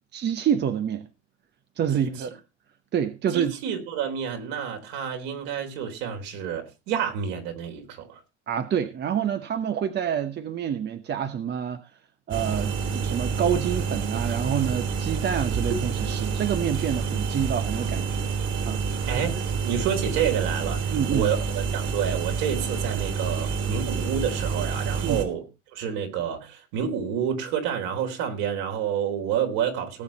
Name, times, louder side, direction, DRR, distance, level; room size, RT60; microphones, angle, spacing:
voice 1, 0.1-1.1 1.8-2.4 2.9-3.5 8.5-11.9 12.3-18.3 18.7-19.1 20.9-21.3 25.0-25.2, right 8 dB, 30° right, 1.0 m, -27 dB
voice 2, 3.3-8.2 19.1-19.3 19.6-25.4 25.7-30.0, right 8 dB, 60° right, 4.0 m, -29 dB
sound 1, 12.3-25.2, right 5 dB, 45° right, 3.5 m, -28 dB
18.0 x 7.1 x 4.3 m
hypercardioid pair, 105°, 35 cm